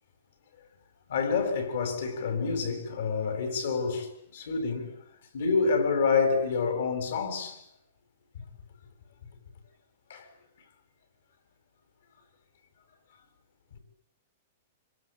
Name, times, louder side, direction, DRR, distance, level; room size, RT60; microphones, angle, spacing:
voice 1, 1.1-4.9 5.3-7.6 10.1-10.3, left 5 dB, 75° left, 7.3 m, -28 dB
26.0 x 25.5 x 8.9 m
hypercardioid pair, 125°, 0 cm